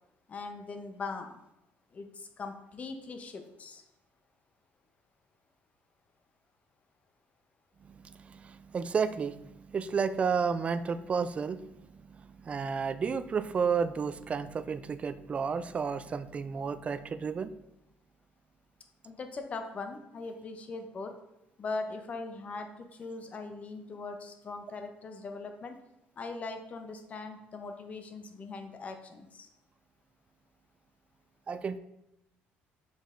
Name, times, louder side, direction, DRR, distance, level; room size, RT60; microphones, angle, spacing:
voice 1, 0.3-1.4 1.9-3.8 19.0-21.1 21.6-25.8 26.2-29.5, left 3 dB, 35° left, 6 dB, 0.9 m, -40 dB
voice 2, 7.8-17.5 31.5-31.8, right 6 dB, 30° right, 13 dB, 0.4 m, -32 dB
6.4 x 5.2 x 3.8 m, 0.87 s
cardioid pair, 125°, 4 cm